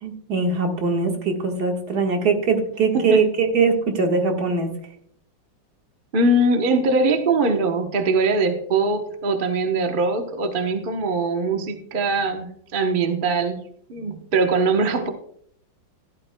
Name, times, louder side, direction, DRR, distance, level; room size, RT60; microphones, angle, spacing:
voice 1, 0.0-4.7, right 4 dB, 55° right, 2 dB, 1.9 m, -21 dB
voice 2, 6.1-13.6 13.9-15.1, right 3 dB, 40° right, 5 dB, 0.8 m, -22 dB
15.0 x 11.5 x 2.2 m, 0.67 s
omnidirectional pair, 2.1 m